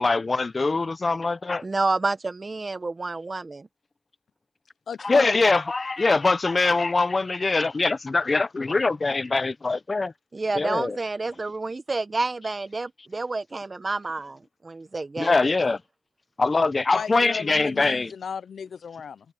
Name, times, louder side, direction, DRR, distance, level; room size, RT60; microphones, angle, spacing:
voice 1, 0.0-1.6 5.0-10.1 10.5-11.0 15.2-15.8 16.4-18.1, left 3 dB, 45° left, 0.7 m, -23 dB
voice 2, 1.6-3.7 10.3-15.4, right 3 dB, 40° right, 1.1 m, -29 dB
voice 3, 4.9-5.4 16.9-19.2, left 6 dB, 85° left, 0.5 m, -35 dB
cardioid pair, 60°, 0 cm